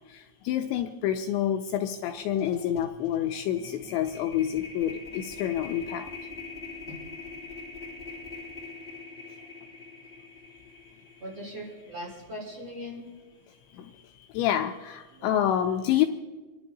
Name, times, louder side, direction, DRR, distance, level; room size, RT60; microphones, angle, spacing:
voice 1, 0.1-6.1 13.7-13.9 14.3-16.1, left 10 dB, 85° left, 6 dB, 2.7 m, -28 dB
sound 1, 1.8-2.0 2.3-12.5, left 3 dB, 15° left, 1.5 m, -43 dB
voice 2, 11.2-13.1 15.1-15.4, equal, 35° right, -4 dB, 5.3 m, -40 dB
28.0 x 11.5 x 4.0 m, 1.3 s
omnidirectional pair, 5.6 m